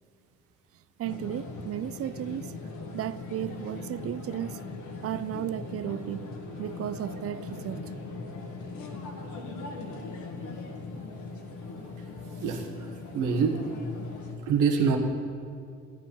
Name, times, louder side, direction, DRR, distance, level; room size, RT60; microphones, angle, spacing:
sound 1, 1.0-14.3, left 3 dB, 75° left, 1.8 m, -39 dB
voice 1, 1.0-2.5 2.9-4.6 5.0-7.9, right 12 dB, 50° right, 0.4 m, -34 dB
voice 2, 12.4-13.6 14.4-15.0, right 6 dB, 90° right, 1.5 m, -26 dB
15.0 x 10.5 x 5.6 m
cardioid pair, 90°, 30 cm